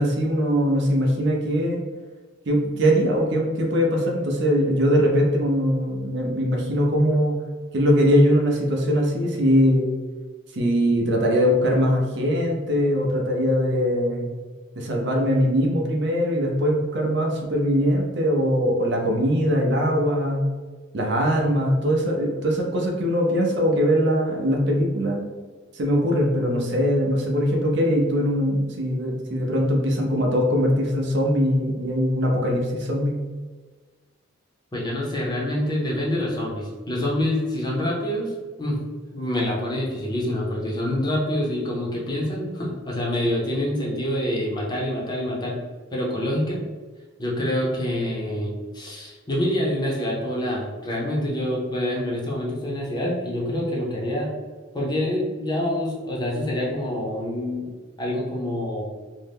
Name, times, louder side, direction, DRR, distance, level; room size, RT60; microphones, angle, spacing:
voice 1, 0.0-1.8 2.5-7.4 7.7-9.9 10.5-14.2 14.8-20.5 20.9-25.2 25.7-33.2, equal, 60° right, 0 dB, 0.5 m, -21 dB
voice 2, 34.7-38.8 39.1-45.6 45.9-46.6 47.2-54.3 54.7-57.7 58.0-58.9, left 1 dB, 20° left, -4 dB, 0.6 m, -26 dB
2.6 x 2.1 x 3.3 m, 1.4 s
head